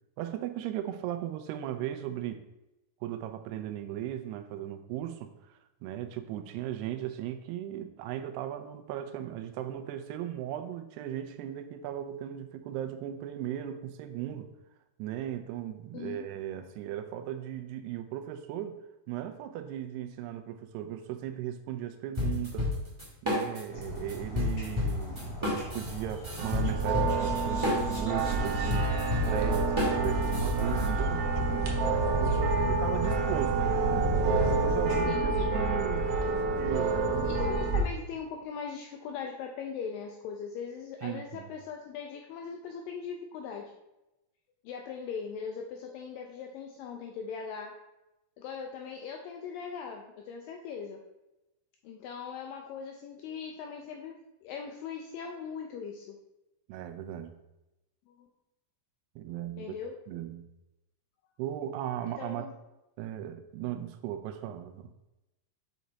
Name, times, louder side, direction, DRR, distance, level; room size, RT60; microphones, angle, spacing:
voice 1, 0.2-2.4 3.0-14.5 15.0-18.8 19.1-22.7 23.2-28.9 29.3-31.8 32.1-37.4 41.0-41.5 56.7-57.4 59.2-59.7 60.1-60.5 61.4-62.5 63.0-64.9, right 11 dB, 90° right, 9 dB, 2.7 m, -37 dB
voice 2, 15.9-16.3 32.3-32.8 35.1-35.3 37.2-43.7 44.6-47.7 48.4-51.0 51.8-54.2 54.4-56.2 58.1-58.3 59.6-59.9 62.2-62.5, left 6 dB, 85° left, 2 dB, 2.0 m, -40 dB
sound 1, 22.2-23.8 24.1-30.9, left 2 dB, 20° right, 0.8 m, -30 dB
sound 2, 23.7-35.0, left 1 dB, 45° left, 3.0 m, -41 dB
sound 3, 26.4-37.8, right 3 dB, 65° right, 2.3 m, -28 dB
8.0 x 5.1 x 4.0 m, 0.96 s
omnidirectional pair, 4.6 m